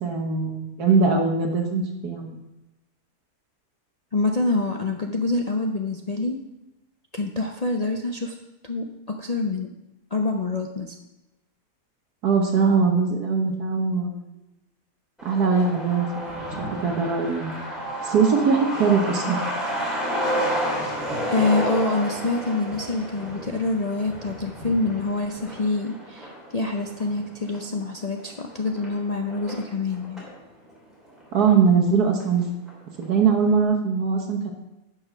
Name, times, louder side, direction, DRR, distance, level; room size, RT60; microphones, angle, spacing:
voice 1, 0.0-2.3 12.2-14.3 15.2-16.5 16.8-17.6 18.0-19.4 31.3-32.4 33.0-34.5, right 5 dB, 70° right, 2 dB, 1.6 m, -21 dB
voice 2, 4.1-6.4 7.1-8.3 8.6-9.7 10.1-11.0 21.3-30.3, left 3 dB, 70° left, 2 dB, 0.3 m, -26 dB
Truck, 15.2-30.4 30.7-30.8 31.0-31.9 32.2-32.3 32.7-33.0, equal, ahead, 3.3 m, -31 dB
11.0 x 5.8 x 5.9 m, 0.95 s
omnidirectional pair, 1.8 m